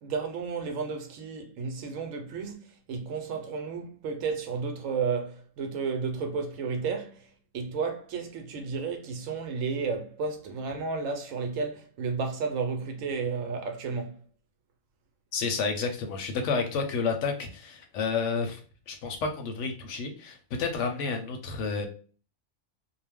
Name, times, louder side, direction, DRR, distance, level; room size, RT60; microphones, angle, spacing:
voice 1, 0.0-14.2, right 5 dB, 75° right, 1.0 m, -32 dB
voice 2, 15.3-18.6 18.9-21.9, left 5 dB, 70° left, 0.9 m, -30 dB
2.4 x 2.1 x 3.3 m
omnidirectional pair, 1.4 m